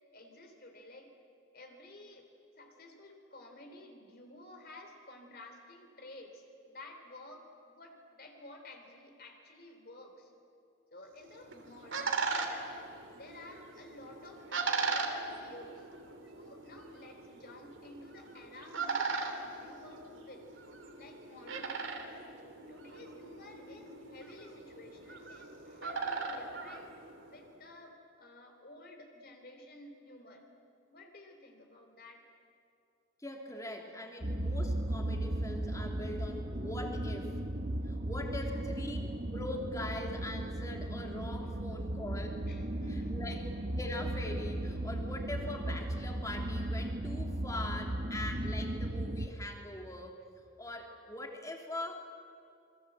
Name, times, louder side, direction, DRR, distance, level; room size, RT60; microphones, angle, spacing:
voice 1, 0.1-1.2 1.5-2.3 2.6-10.4 10.9-12.8 13.1-15.9 16.3-20.5 21.0-22.1 22.7-26.9 27.3-30.4 30.9-32.3 38.3-38.7 42.5-43.4, left 1 dB, 50° left, 4 dB, 3.4 m, -53 dB
sound 1, 11.2-27.5, right 4 dB, 75° right, 2.9 m, -39 dB
voice 2, 33.2-37.4 37.8-42.4 42.9-43.4 43.8-50.2 50.6-52.0, left 1 dB, 15° left, 2 dB, 2.9 m, -42 dB
sound 2, 34.2-49.3, right 1 dB, 45° right, 1.2 m, -36 dB
27.5 x 23.5 x 8.0 m, 2.6 s
head